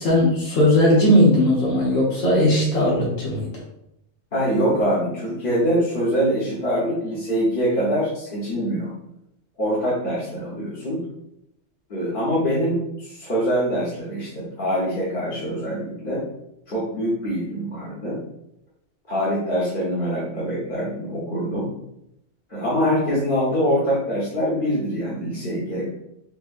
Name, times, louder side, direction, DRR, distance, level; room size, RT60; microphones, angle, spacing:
voice 1, 0.0-3.5, left 1 dB, 85° left, -4 dB, 1.5 m, -18 dB
voice 2, 4.3-8.9 9.6-11.0 11.9-16.2 16.7-18.2 19.1-21.7 22.5-25.9, equal, 45° left, -9 dB, 1.1 m, -24 dB
4.4 x 2.9 x 2.5 m, 0.79 s
omnidirectional pair, 1.3 m